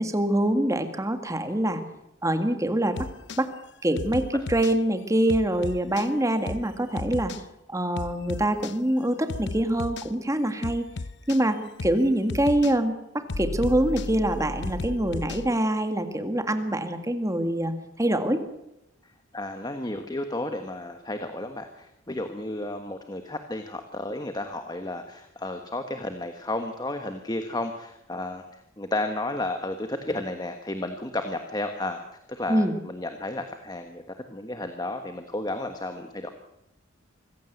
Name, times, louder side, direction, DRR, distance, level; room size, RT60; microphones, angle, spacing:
voice 1, 0.0-1.8 2.2-3.1 3.4-3.5 3.8-7.3 7.7-10.9 11.3-18.4 32.5-32.7, right 1 dB, 15° right, 7 dB, 1.9 m, -25 dB
sound 1, 3.0-3.4 4.0-4.8 5.3-6.1 6.5-6.7 7.0-7.4 8.0-8.8 9.3-10.1 10.6-11.4 11.8-12.0 12.3-12.8 13.3-15.5, left 3 dB, 60° left, 0.7 m, -34 dB
voice 2, 19.3-32.0 32.3-34.0 34.3-36.3, left 2 dB, 20° left, 6 dB, 1.4 m, -32 dB
24.5 x 15.5 x 8.0 m, 0.89 s
head